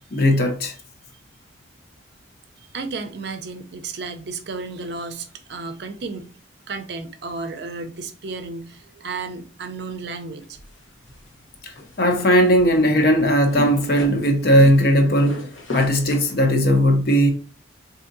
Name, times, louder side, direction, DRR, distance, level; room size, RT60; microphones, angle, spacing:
voice 1, 0.1-0.7 11.6-17.3, equal, 50° left, 0.7 m, -18 dB
voice 2, 2.6-6.3 6.7-10.6, right 4 dB, 60° right, 0.5 m, -33 dB
sound 1, 10.4-16.5, left 2 dB, 85° left, 0.9 m, -37 dB
3.7 x 2.7 x 2.5 m
head